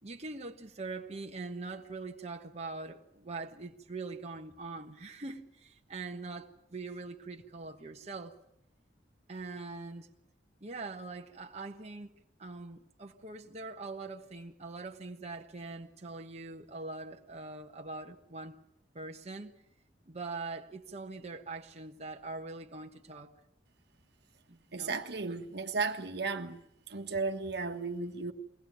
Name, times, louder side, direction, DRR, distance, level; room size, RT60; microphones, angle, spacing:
voice 1, 0.0-8.4 9.3-10.1 10.6-12.1 12.4-18.6 18.9-19.5 20.1-23.3 24.5-25.0, right 3 dB, 40° right, 1.3 m, -43 dB
voice 2, 24.7-28.3, right 4 dB, 65° right, 1.6 m, -35 dB
22.5 x 18.0 x 9.3 m
head